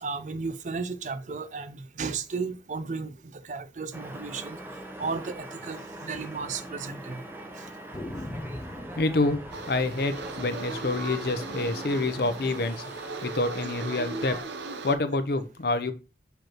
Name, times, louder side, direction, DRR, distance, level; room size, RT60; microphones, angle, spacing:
voice 1, 0.0-3.1 3.4-4.6 5.0-7.2, right 4 dB, 40° right, 0.5 m, -34 dB
sound 1, 3.9-14.4, right 1 dB, 10° right, 0.8 m, -43 dB
sound 2, 5.1-5.3 5.6-5.7 6.0-6.1 6.7-7.2 7.9-12.7, left 1 dB, 20° left, 0.4 m, -43 dB
voice 2, 9.0-9.4 9.7-12.9 13.2-14.4 14.8-15.9, left 2 dB, 55° left, 0.7 m, -27 dB
sound 3, 9.5-15.0, right 3 dB, 75° right, 0.8 m, -37 dB
6.2 x 5.0 x 3.0 m
head